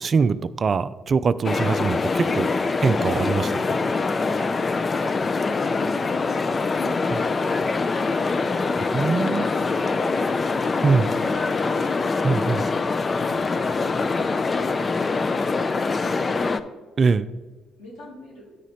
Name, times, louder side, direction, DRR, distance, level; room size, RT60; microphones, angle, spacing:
voice 1, 0.0-2.5 2.8-3.6 8.9-9.5 10.8-11.1 12.2-12.6 17.0-17.3, right 5 dB, 45° right, 14 dB, 0.3 m, -22 dB
sound 1, 1.4-16.6, left 4 dB, 40° left, 0.4 m, -24 dB
voice 2, 5.4-6.3 9.2-10.2 17.8-18.5, left 1 dB, 80° left, -5 dB, 2.7 m, -43 dB
9.1 x 4.9 x 4.2 m, 1.3 s
hypercardioid pair, 50°, 0 cm